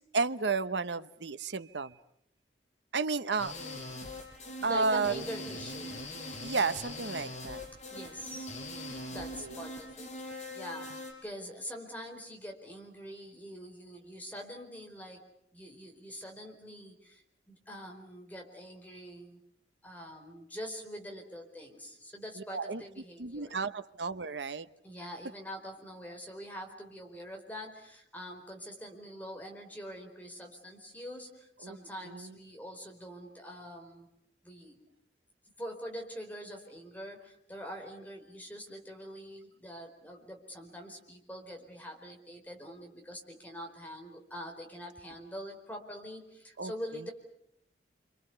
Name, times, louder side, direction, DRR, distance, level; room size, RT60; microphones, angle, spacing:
voice 1, 0.1-1.9 2.9-3.5 4.6-5.2 6.4-7.7 9.2-9.6 22.5-22.8 23.2-24.7 31.6-31.8 32.0-32.4 46.6-46.7, right 4 dB, 85° right, 13 dB, 1.0 m, -32 dB
sound 1, 3.4-11.1, left 1 dB, 40° left, 6.1 m, -42 dB
voice 2, 4.6-6.0 7.9-8.5 9.1-10.9 11.2-15.2 15.5-17.2 17.5-19.4 19.8-23.6 24.8-34.1 34.4-34.8 35.6-47.1, equal, 10° left, 2 dB, 4.4 m, -44 dB
28.5 x 26.5 x 6.9 m, 0.73 s
head